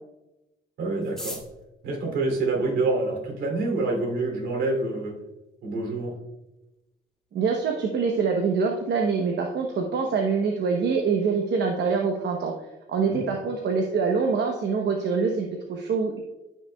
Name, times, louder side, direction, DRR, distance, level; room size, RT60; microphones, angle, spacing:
voice 1, 0.8-1.4 1.8-5.2 5.6-6.2 13.0-13.3, right 3 dB, 75° right, 1 dB, 3.0 m, -27 dB
sound 1, 1.0-3.2 4.0-4.1 4.4-4.5 4.7-5.2 5.5-5.6 5.8-6.2 6.6-6.7 7.1-7.4, left 1 dB, 5° left, 1.9 m, -42 dB
voice 2, 7.3-12.5 12.9-16.2, right 5 dB, 60° right, 2 dB, 1.0 m, -25 dB
14.0 x 6.0 x 2.3 m, 0.99 s
cardioid pair, 90°, 20 cm